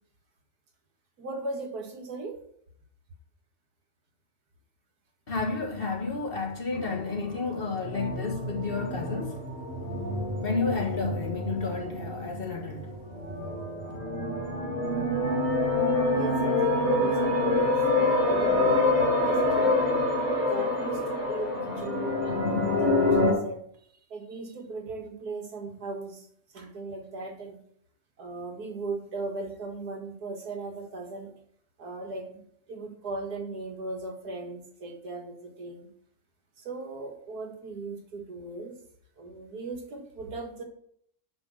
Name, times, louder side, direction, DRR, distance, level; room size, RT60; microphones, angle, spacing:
voice 1, 1.2-2.4 13.4-13.5 16.1-19.8 20.5-23.6 24.1-26.3 26.5-27.6 28.2-31.3 31.8-35.9 36.6-38.8 39.2-40.6, right 3 dB, 85° right, 2.2 m, -38 dB
voice 2, 5.3-9.5 10.0-13.2 13.6-13.8, left 4 dB, 40° left, 1.6 m, -32 dB
sound 1, 6.7-23.3, left 2 dB, 25° right, 4.4 m, -27 dB
9.5 x 5.3 x 6.2 m
omnidirectional pair, 1.6 m